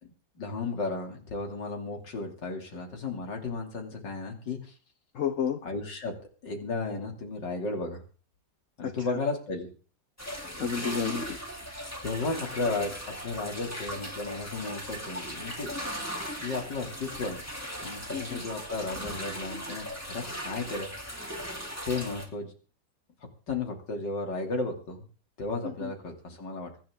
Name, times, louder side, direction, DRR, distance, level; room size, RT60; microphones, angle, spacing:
voice 1, 0.0-4.8 5.6-6.1 6.4-8.0 8.8-9.7 12.0-15.7 16.4-17.4 17.8-20.9 21.8-22.5 23.5-25.0 25.4-26.7, left 3 dB, 75° left, 3 dB, 3.4 m, -34 dB
voice 2, 5.1-5.6 8.8-9.2 10.6-11.4 18.1-18.4 25.6-25.9, left 7 dB, 50° left, 8 dB, 1.1 m, -31 dB
sound 1, 10.2-22.3, equal, 10° left, 2.7 m, -38 dB
23.5 x 10.5 x 3.7 m, 0.38 s
omnidirectional pair, 1.9 m